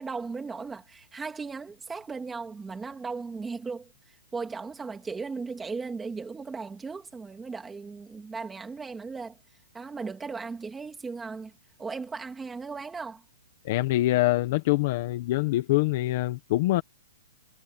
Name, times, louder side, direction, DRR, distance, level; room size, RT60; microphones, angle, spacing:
voice 1, 0.0-9.4 9.7-11.5 11.8-13.2, right 4 dB, 5° right, 3.0 m, -37 dB
voice 2, 13.6-16.8, left 17 dB, 30° left, 1.3 m, -24 dB
hypercardioid pair, 180°, 0 cm